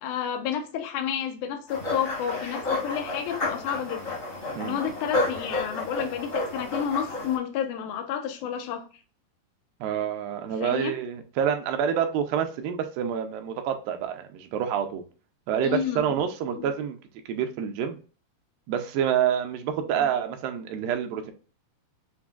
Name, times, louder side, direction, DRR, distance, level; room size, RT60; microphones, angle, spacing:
voice 1, 0.0-4.2 4.6-8.9 10.6-10.9 15.6-16.1 16.6-16.7 20.0-20.1, left 8 dB, 80° left, 1.8 m, -30 dB
sound 1, 1.7-7.4, left 2 dB, 35° left, 1.3 m, -31 dB
voice 2, 9.8-15.0 15.5-17.0 17.3-18.0 18.7-21.3, right 8 dB, 80° right, 2.3 m, -27 dB
7.0 x 2.7 x 2.3 m
omnidirectional pair, 4.3 m